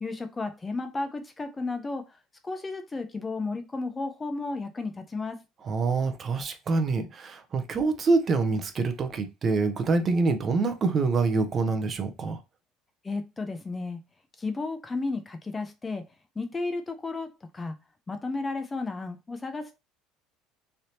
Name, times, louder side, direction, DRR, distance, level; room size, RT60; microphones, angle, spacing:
voice 1, 0.0-2.2 2.4-5.4 13.0-14.0 14.4-16.1 16.4-17.7 18.1-19.8, left 3 dB, 15° left, 0.4 m, -33 dB
voice 2, 5.6-12.4, right 4 dB, 30° right, 0.6 m, -26 dB
3.2 x 2.7 x 2.8 m
cardioid pair, 135°, 0 cm